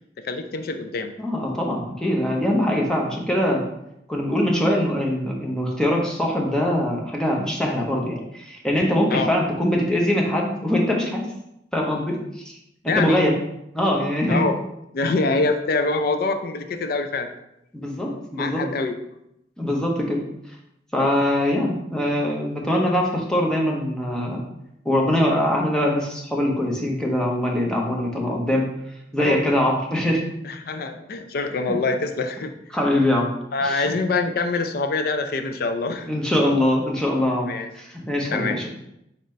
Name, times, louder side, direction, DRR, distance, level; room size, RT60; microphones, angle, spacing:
voice 1, 0.2-1.1 9.1-9.3 12.8-13.2 14.3-14.6 14.9-17.3 18.3-18.9 29.2-29.4 30.4-32.5 33.5-36.1 37.5-37.7 38.3-38.6, left 3 dB, 55° left, 8 dB, 0.4 m, -25 dB
voice 2, 1.2-3.6 4.1-11.2 11.7-12.5 12.8-13.4 13.7-14.5 17.7-18.6 19.6-20.2 20.9-24.4 24.8-28.7 29.1-30.2 31.7-31.8 32.7-33.3 33.6-33.8 36.1-38.7, left 1 dB, 5° left, -1 dB, 0.7 m, -22 dB
4.3 x 3.9 x 3.2 m, 0.82 s
head